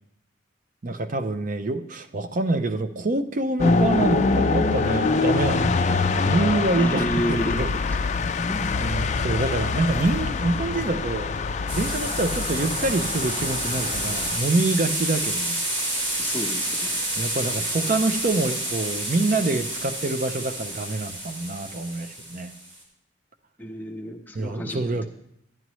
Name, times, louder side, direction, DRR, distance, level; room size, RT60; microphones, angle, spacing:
voice 1, 0.8-7.8 8.8-11.3 11.7-15.6 17.2-22.5 24.3-25.1, right 2 dB, 45° right, 10 dB, 0.6 m, -26 dB
sound 1, 3.6-14.4, left 4 dB, 40° left, 0.4 m, -24 dB
voice 2, 6.8-7.5 8.5-8.6 16.2-17.0 23.6-24.8, equal, 10° left, 1 dB, 0.9 m, -30 dB
sound 2, 11.7-22.8, right 1 dB, 85° right, 2.6 m, -29 dB
11.0 x 11.0 x 3.1 m, 0.76 s
head